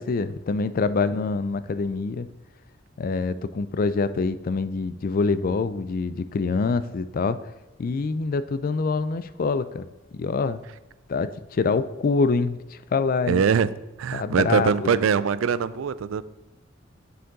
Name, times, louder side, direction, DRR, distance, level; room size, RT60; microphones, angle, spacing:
voice 1, 0.0-2.3 3.0-7.4 7.8-9.9 10.1-10.6 11.1-13.4 14.1-14.9, left 4 dB, 45° left, 14 dB, 0.4 m, -25 dB
voice 2, 13.3-13.7 14.0-16.2, right 6 dB, 80° right, 16 dB, 0.4 m, -22 dB
6.8 x 6.5 x 3.9 m, 1.0 s
head